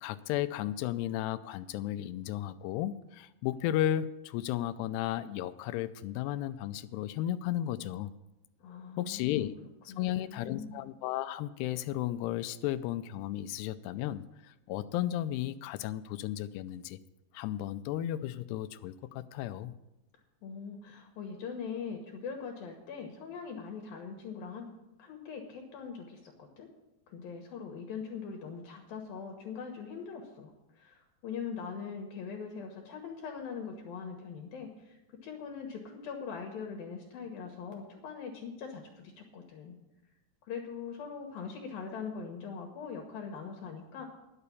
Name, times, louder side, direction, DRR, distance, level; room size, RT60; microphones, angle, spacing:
voice 1, 0.0-8.1 9.0-9.5 9.9-17.0 17.3-19.7, left 13 dB, 85° left, 12 dB, 2.6 m, -34 dB
voice 2, 8.6-9.5 9.9-10.8 20.4-24.7 25.0-26.7 27.1-35.0 35.2-39.8 40.4-44.1, left 6 dB, 65° left, 2 dB, 2.7 m, -42 dB
11.0 x 6.7 x 8.4 m, 0.96 s
omnidirectional pair, 4.8 m